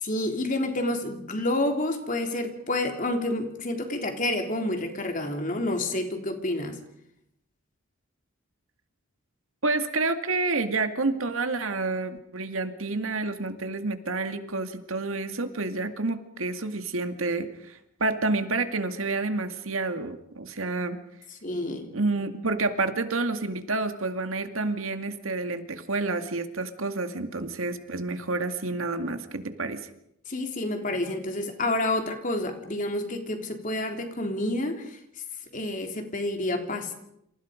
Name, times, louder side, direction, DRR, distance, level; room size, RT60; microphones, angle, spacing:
voice 1, 0.0-6.8 21.4-22.0 30.3-35.0 35.5-37.1, left 1 dB, 40° left, 4 dB, 3.6 m, -29 dB
voice 2, 9.6-21.0 21.9-29.9, right 3 dB, 80° right, 8 dB, 2.2 m, -29 dB
29.0 x 27.0 x 5.2 m, 0.78 s
head